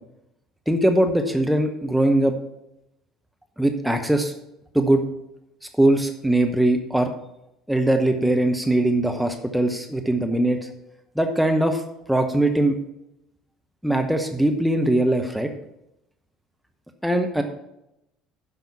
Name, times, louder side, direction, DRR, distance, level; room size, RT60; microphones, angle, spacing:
voice 1, 0.7-2.3 3.6-4.3 4.7-5.0 5.8-7.1 7.7-10.6 11.2-11.8 12.1-12.8 13.8-15.5 17.0-17.4, right 1 dB, ahead, 4 dB, 1.0 m, -21 dB
10.5 x 5.5 x 5.8 m, 0.85 s
figure-of-eight pair, 60°, 0 cm